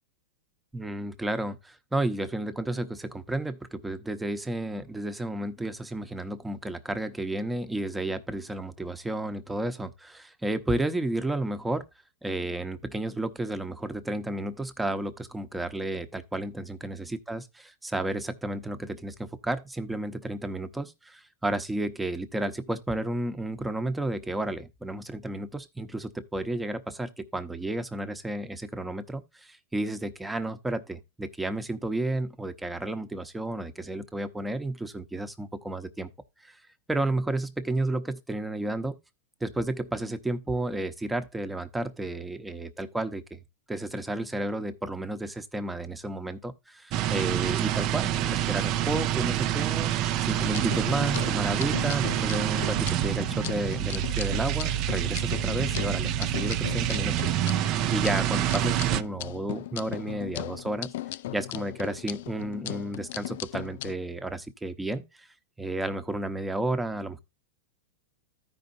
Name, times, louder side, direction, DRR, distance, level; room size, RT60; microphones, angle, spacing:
voice 1, 0.7-11.8 12.2-36.1 36.4-36.6 36.9-39.0 39.4-43.4 43.7-60.9 61.3-65.0 65.6-67.2, right 1 dB, 5° right, 0.9 m, -32 dB
sound 1, 46.9-59.0, right 12 dB, 45° right, 0.5 m, -27 dB
sound 2, 50.4-63.9, left 15 dB, 70° left, 0.3 m, -38 dB
14.5 x 5.2 x 2.7 m
supercardioid pair, 135°, 0 cm